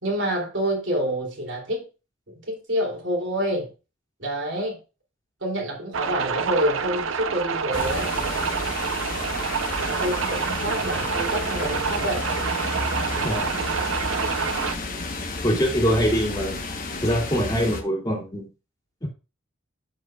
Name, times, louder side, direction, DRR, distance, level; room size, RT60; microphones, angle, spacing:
voice 1, 0.0-1.9 2.3-3.7 4.2-4.8 5.4-8.1 9.8-12.3, equal, 65° right, 3.1 m, -27 dB
sound 1, 5.9-14.7, right 6 dB, 85° right, 0.7 m, -27 dB
sound 2, 7.7-17.8, left 3 dB, 45° left, 1.2 m, -31 dB
voice 2, 15.4-16.6 17.0-18.5 19.0-19.1, equal, 20° left, 2.4 m, -23 dB
13.5 x 4.8 x 2.4 m
head